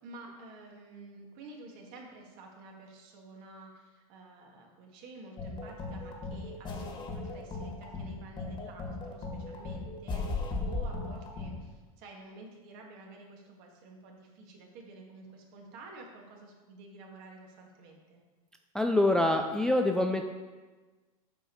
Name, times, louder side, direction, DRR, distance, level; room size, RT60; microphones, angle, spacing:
voice 1, 0.0-18.2, right 2 dB, 50° right, 0 dB, 1.9 m, -50 dB
sound 1, 5.4-11.6, left 3 dB, 25° left, 1.6 m, -36 dB
voice 2, 18.7-20.3, left 1 dB, 5° left, 4 dB, 0.3 m, -25 dB
8.2 x 5.4 x 4.5 m, 1.3 s
hypercardioid pair, 120°, 19 cm